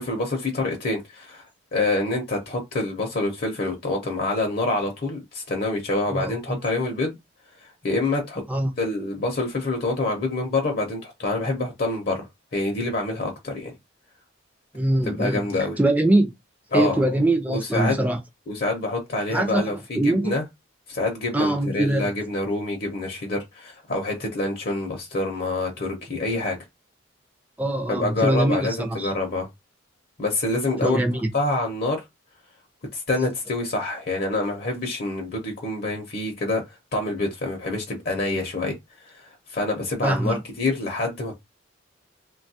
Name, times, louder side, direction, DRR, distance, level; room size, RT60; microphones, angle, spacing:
voice 1, 0.0-1.5 1.7-7.2 7.6-8.4 8.8-13.7 15.1-15.7 16.7-17.0 17.5-17.9 18.5-20.4 20.9-26.6 27.9-29.5 30.2-31.0 31.3-32.0 32.9-38.8 39.0-41.4, left 2 dB, 50° left, 0.6 m, -26 dB
voice 2, 6.1-6.6 8.5-8.7 14.7-15.5 15.8-16.3 16.7-18.2 19.3-19.6 19.9-20.3 21.3-22.1 27.6-29.1 30.8-31.3 40.0-40.4, right 1 dB, 10° right, 0.4 m, -22 dB
3.1 x 2.3 x 2.7 m
head